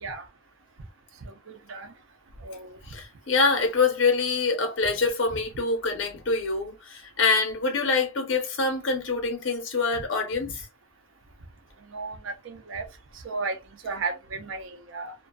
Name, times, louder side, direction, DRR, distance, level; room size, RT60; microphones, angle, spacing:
voice 1, 1.2-1.9 2.4-2.8 9.9-10.0 11.9-12.9 13.2-13.6 13.8-15.1, right 4 dB, 90° right, 0.6 m, -34 dB
voice 2, 2.9-10.7, left 4 dB, 75° left, 0.8 m, -25 dB
2.5 x 2.2 x 2.3 m
head